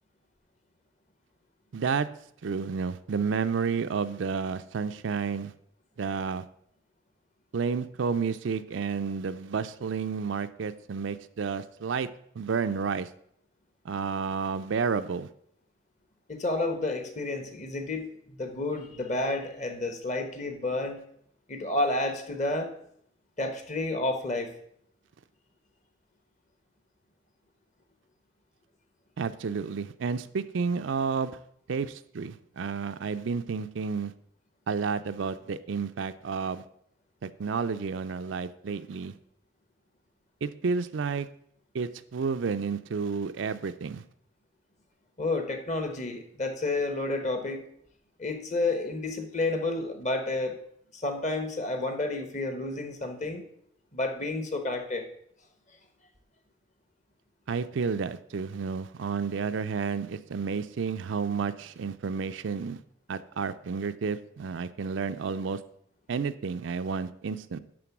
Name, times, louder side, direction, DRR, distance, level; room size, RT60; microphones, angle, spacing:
voice 1, 1.7-2.1 2.4-5.5 6.0-6.4 7.5-12.1 12.4-13.1 13.8-15.3 29.2-31.4 31.7-34.1 34.7-36.6 37.2-39.2 40.4-41.3 41.7-44.0 57.5-62.8 63.1-65.6 66.1-67.6, right 5 dB, 65° right, 11 dB, 0.4 m, -31 dB
voice 2, 16.3-21.0 21.5-22.7 23.4-24.5 45.2-47.6 48.2-50.6 50.9-53.4 53.9-55.1, left 2 dB, 35° left, 6 dB, 1.0 m, -30 dB
11.0 x 3.8 x 5.9 m, 0.69 s
head